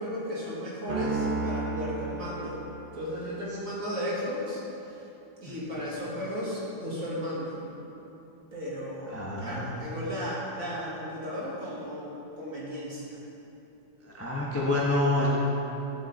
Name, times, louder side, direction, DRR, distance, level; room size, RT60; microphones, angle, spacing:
voice 1, 0.0-2.6 2.9-4.6 5.4-7.6 8.5-13.2, equal, 45° right, -7 dB, 2.5 m, -34 dB
Piano, 0.9-3.3, right 3 dB, 85° right, 2.3 m, -33 dB
voice 2, 9.1-9.9 14.2-15.3, left 1 dB, 10° left, -6 dB, 1.0 m, -27 dB
11.5 x 7.9 x 4.3 m, 3.0 s
omnidirectional pair, 2.1 m